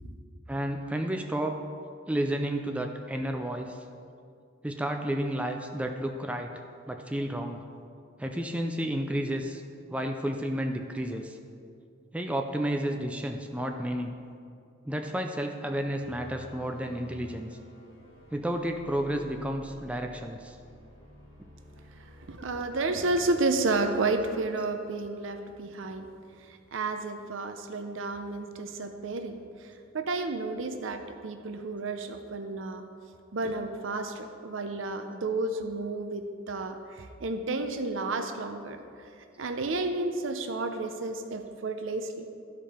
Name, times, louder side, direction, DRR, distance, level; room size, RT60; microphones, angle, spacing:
voice 1, 0.5-1.6 2.1-3.8 4.6-6.5 6.9-7.6 8.2-9.6 9.9-11.4 12.1-14.1 14.9-17.5 18.3-20.6, right 1 dB, 5° right, 4 dB, 0.4 m, -31 dB
sound 1, 16.0-23.3, equal, 65° left, 1.6 m, -52 dB
voice 2, 22.0-26.1 26.4-32.9 33.3-38.8 39.4-42.3, right 2 dB, 65° right, 7 dB, 0.6 m, -31 dB
12.5 x 5.1 x 4.3 m, 2.3 s
head